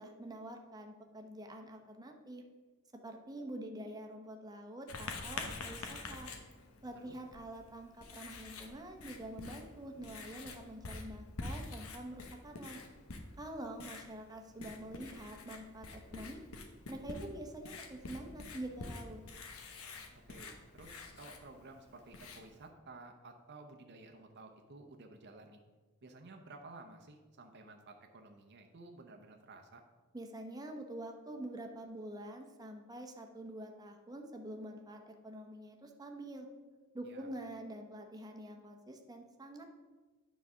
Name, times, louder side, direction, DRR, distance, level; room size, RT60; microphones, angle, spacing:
voice 1, 0.0-2.4 2.9-6.3 6.8-12.8 13.4-16.4 16.9-19.2 30.1-36.5 36.9-39.7, right 1 dB, 20° right, 3 dB, 0.9 m, -46 dB
Writing, 4.9-22.7, left 3 dB, 85° left, 1.0 m, -47 dB
voice 2, 20.3-25.6 26.0-29.8 37.0-37.3, right 2 dB, 55° right, 3 dB, 0.7 m, -54 dB
9.6 x 4.1 x 6.2 m, 1.3 s
head